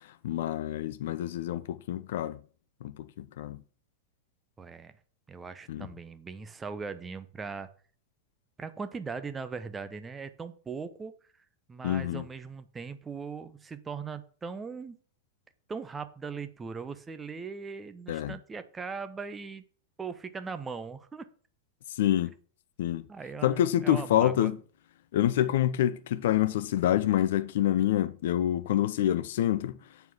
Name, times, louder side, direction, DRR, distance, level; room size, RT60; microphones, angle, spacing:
voice 1, 0.2-2.4 2.8-3.6 5.7-5.9 11.8-12.2 18.1-18.3 22.0-22.3 22.8-23.0 23.4-24.5 25.1-29.8, left 12 dB, 55° left, 0.5 m, -27 dB
voice 2, 4.6-4.9 5.3-7.7 8.6-11.1 11.7-15.0 15.7-19.6 20.0-21.3 23.1-24.5, right 5 dB, 15° right, 1.0 m, -39 dB
8.1 x 4.7 x 7.1 m
figure-of-eight pair, 90°, 0 cm